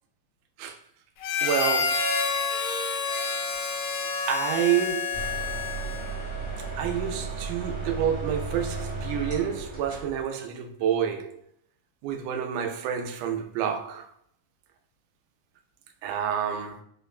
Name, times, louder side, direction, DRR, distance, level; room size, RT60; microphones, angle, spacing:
Harmonica, 1.2-6.2, left 5 dB, 85° left, 2.0 m, -28 dB
voice 1, 1.4-2.1 4.3-5.1 6.8-11.4 12.0-14.1 16.0-16.8, right 9 dB, 90° right, 2.1 m, -28 dB
sound 1, 5.1-10.2, right 3 dB, 45° right, 0.7 m, -34 dB
5.2 x 2.1 x 2.4 m
omnidirectional pair, 3.5 m